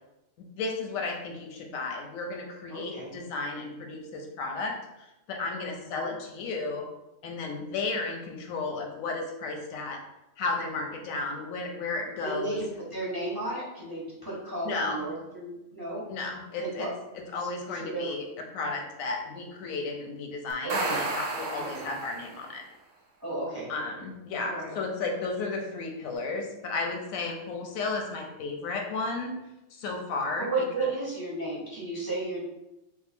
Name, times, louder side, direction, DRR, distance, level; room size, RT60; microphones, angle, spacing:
voice 1, 0.4-6.9 7.2-10.0 10.4-12.6 14.6-15.1 16.1-16.9 17.3-18.2 18.5-22.6 23.7-29.3 29.7-30.5, left 3 dB, 85° left, 3 dB, 1.0 m, -33 dB
voice 2, 2.7-3.1 5.8-6.1 12.2-16.1 16.6-16.9 17.4-18.1 20.6-21.0 21.6-21.9 23.2-23.7 24.4-24.7 30.4-32.4, right 2 dB, 20° right, -5 dB, 0.6 m, -34 dB
sound 1, 20.5-22.5, right 3 dB, 60° right, 0.7 m, -32 dB
2.7 x 2.3 x 4.1 m, 0.93 s
omnidirectional pair, 1.4 m